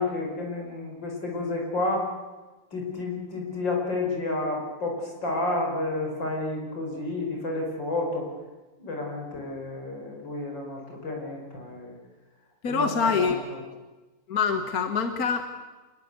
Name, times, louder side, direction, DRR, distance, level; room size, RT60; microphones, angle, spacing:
voice 1, 0.0-2.1 2.7-8.3 8.8-12.0 12.7-13.6, left 2 dB, 80° left, 1 dB, 6.1 m, -30 dB
voice 2, 12.6-13.4 14.3-15.4, left 5 dB, 55° left, 7 dB, 1.8 m, -25 dB
26.5 x 20.5 x 8.2 m, 1.2 s
omnidirectional pair, 2.0 m